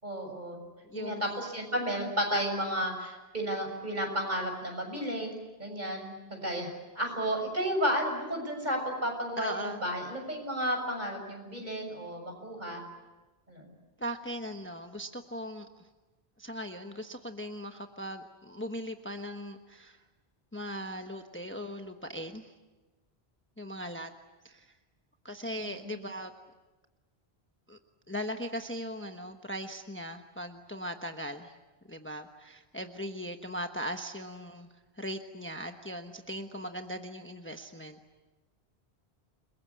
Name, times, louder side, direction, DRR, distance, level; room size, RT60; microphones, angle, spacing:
voice 1, 0.0-0.6 0.9-5.3 5.6-12.8 13.5-13.7 25.6-26.0, equal, 45° right, 3 dB, 7.0 m, -33 dB
voice 2, 0.9-1.4 9.4-9.8 14.0-15.9 16.4-20.0 20.5-22.5 23.6-24.1 24.4-24.7 25.2-26.3 27.7-27.8 28.1-31.5 31.9-34.7 35.0-38.0, equal, 10° left, 5 dB, 1.1 m, -39 dB
29.5 x 21.5 x 8.5 m, 1.2 s
omnidirectional pair, 1.1 m